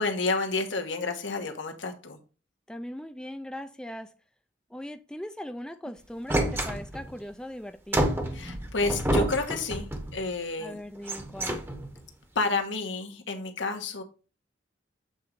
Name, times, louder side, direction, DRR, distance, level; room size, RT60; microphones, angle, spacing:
voice 1, 0.0-2.2 8.3-10.8 12.3-14.0, left 3 dB, 90° left, 1.3 m, -30 dB
voice 2, 2.7-4.1 4.7-8.1 10.6-11.6, left 1 dB, 5° left, 0.4 m, -39 dB
sound 1, 6.3-7.2 7.9-10.2 11.0-12.1, right 1 dB, 15° right, 0.9 m, -29 dB
7.9 x 3.9 x 4.5 m
head